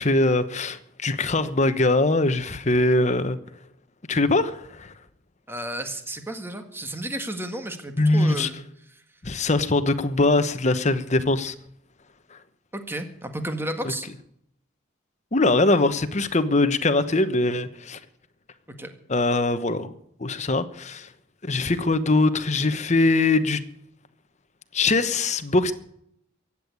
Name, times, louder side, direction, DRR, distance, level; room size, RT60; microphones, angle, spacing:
voice 1, 0.0-3.4 4.1-4.9 8.0-8.5 9.2-11.5 12.3-12.4 13.8-13.9 15.3-18.0 19.1-19.9 20.2-21.1 21.4-23.6 24.7-25.7, left 2 dB, 35° left, 11 dB, 1.0 m, -22 dB
voice 2, 5.5-8.6 12.7-14.1 18.8-18.9, right 1 dB, 10° right, 6 dB, 1.7 m, -32 dB
15.5 x 8.6 x 9.5 m, 0.73 s
head